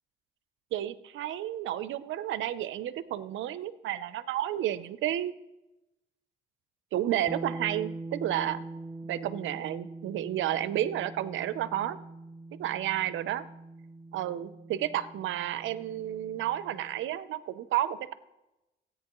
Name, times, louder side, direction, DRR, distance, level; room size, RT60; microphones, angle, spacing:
voice 1, 0.7-5.3 6.9-8.6 9.1-12.0 12.6-13.5 14.1-18.1, right 12 dB, 80° right, 15 dB, 0.6 m, -31 dB
sound 1, 7.3-17.0, right 2 dB, 10° right, 0.4 m, -43 dB
16.5 x 9.1 x 3.0 m, 0.96 s
cardioid pair, 90°, 20 cm